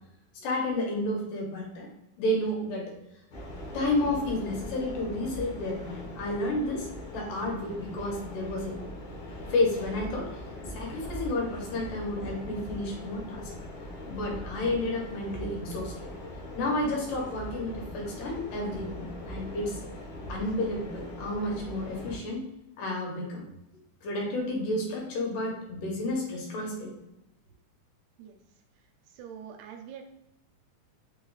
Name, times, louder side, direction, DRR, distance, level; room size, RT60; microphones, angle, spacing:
voice 1, 0.3-1.9 2.2-3.0 3.7-8.7 9.5-10.4 10.7-13.5 14.1-16.1 16.5-19.8 20.3-22.5 22.8-23.4 24.0-26.9, left 1 dB, 80° left, -1 dB, 2.7 m, -31 dB
sound 1, 3.3-22.2, left 1 dB, 60° left, 1.3 m, -41 dB
voice 2, 28.8-30.0, right 8 dB, 80° right, 4 dB, 1.9 m, -45 dB
5.4 x 2.3 x 3.9 m, 0.87 s
omnidirectional pair, 3.7 m